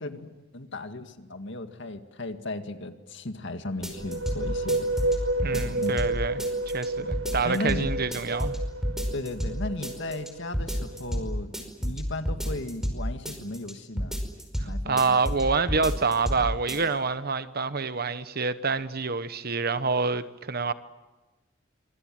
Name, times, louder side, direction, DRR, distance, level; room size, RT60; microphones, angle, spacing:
voice 1, 0.0-4.9 5.5-5.9 7.0-7.1 7.4-7.9 9.1-11.5 11.8-14.2 14.6-15.2, left 2 dB, 65° left, 2.0 m, -35 dB
sound 1, 3.8-4.4 4.7-6.1 6.4-6.9 7.1-7.8 8.1-8.6 8.8-9.5 9.8-10.3 10.5-11.3 11.5-13.0 13.3-13.7 14.0-14.7 15.0-15.4 15.7-16.4 16.7-16.8, equal, 5° right, 5.3 m, -30 dB
sound 2, 3.8-11.4, right 2 dB, 70° right, 1.6 m, -31 dB
voice 2, 5.4-6.5 6.7-8.5 14.8-20.7, right 4 dB, 50° right, 1.1 m, -27 dB
26.0 x 25.0 x 7.7 m
head